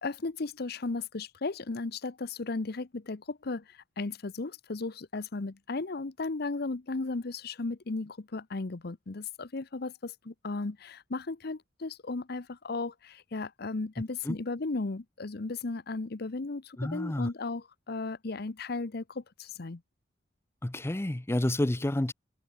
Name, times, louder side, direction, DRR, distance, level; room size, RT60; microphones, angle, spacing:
voice 1, 0.0-19.8, left 3 dB, 60° left, 0.8 m, -35 dB
voice 2, 16.8-17.3 20.6-22.1, left 1 dB, 15° left, 0.6 m, -29 dB
head